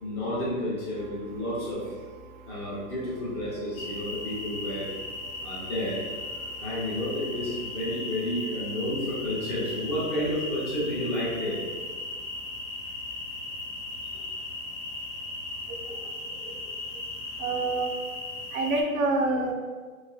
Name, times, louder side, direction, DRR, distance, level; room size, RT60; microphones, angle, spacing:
voice 1, 0.0-1.9 2.4-4.9 5.4-6.0 6.6-11.6 16.4-16.5, left 1 dB, 20° left, -8 dB, 0.4 m, -31 dB
sound 1, 3.8-18.8, left 2 dB, 55° left, 1.0 m, -37 dB
voice 2, 17.4-17.9 18.5-19.5, right 2 dB, 70° right, 2 dB, 0.6 m, -26 dB
3.0 x 2.5 x 2.3 m, 1.5 s
hypercardioid pair, 140°, 42 cm